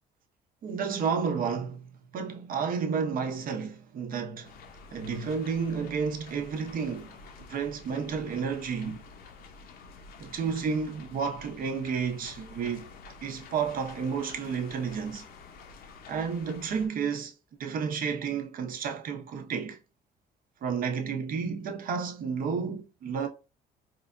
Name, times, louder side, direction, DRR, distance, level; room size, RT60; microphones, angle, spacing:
voice 1, 0.6-4.5 4.9-7.2 7.5-9.0 10.2-12.9 13.2-15.2 16.1-17.3 17.6-19.8 20.6-23.3, right 6 dB, 55° right, 0.9 m, -31 dB
sound 1, 4.4-16.9, left 4 dB, 60° left, 0.8 m, -49 dB
4.7 x 2.3 x 2.5 m
cardioid pair, 110°, 17 cm